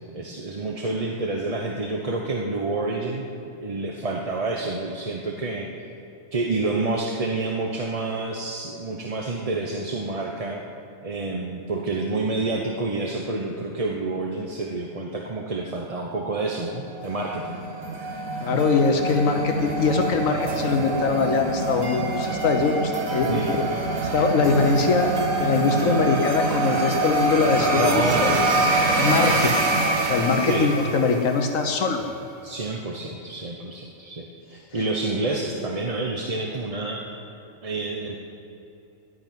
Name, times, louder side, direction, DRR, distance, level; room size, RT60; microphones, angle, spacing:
voice 1, 0.1-3.3 3.6-5.9 6.3-10.6 11.0-17.6 23.3-23.5 27.7-28.7 30.5-30.7 32.4-37.0 37.6-38.2, right 2 dB, 30° right, 0 dB, 0.9 m, -28 dB
sound 1, 16.9-31.6, right 2 dB, 80° right, 1.8 m, -25 dB
voice 2, 18.4-23.4 24.1-25.1 25.4-28.4 29.0-29.5 30.1-32.0, left 4 dB, 75° left, 4 dB, 1.3 m, -22 dB
12.5 x 10.0 x 9.3 m, 2.9 s
omnidirectional pair, 1.4 m